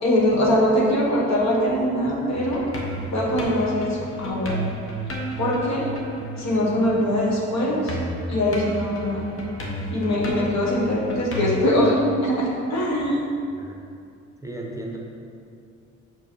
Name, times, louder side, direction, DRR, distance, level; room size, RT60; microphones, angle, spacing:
voice 1, 0.0-2.6 3.1-4.6 5.4-5.9 6.4-8.0 8.3-9.3 9.9-13.3, left 1 dB, 65° left, -3 dB, 1.7 m, -22 dB
sound 1, 2.3-7.4 7.7-11.7, right 1 dB, 45° left, 1.3 m, -32 dB
voice 2, 14.4-15.0, right 1 dB, 10° right, -1 dB, 0.9 m, -34 dB
6.2 x 5.0 x 4.7 m, 2.5 s
cardioid pair, 90°, 30 cm